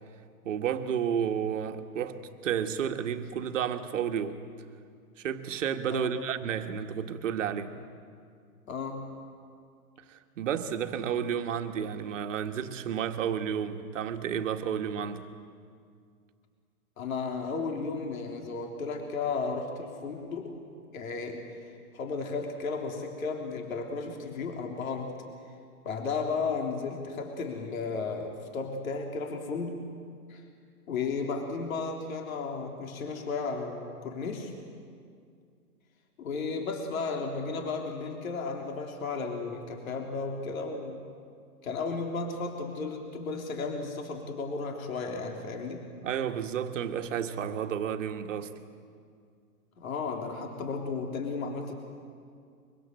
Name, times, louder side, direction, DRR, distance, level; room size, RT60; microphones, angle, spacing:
voice 1, 0.4-4.4 5.2-7.7 10.1-15.3 46.0-48.5, right 8 dB, 50° right, 6 dB, 1.7 m, -31 dB
voice 2, 8.7-9.1 17.0-20.5 20.9-21.4 21.9-25.1 25.8-29.8 30.3-30.4 30.9-34.5 36.2-41.0 41.6-45.9 49.8-51.7, left 4 dB, 60° left, 2 dB, 3.5 m, -34 dB
24.5 x 24.0 x 7.8 m, 2.2 s
hypercardioid pair, 160°, 47 cm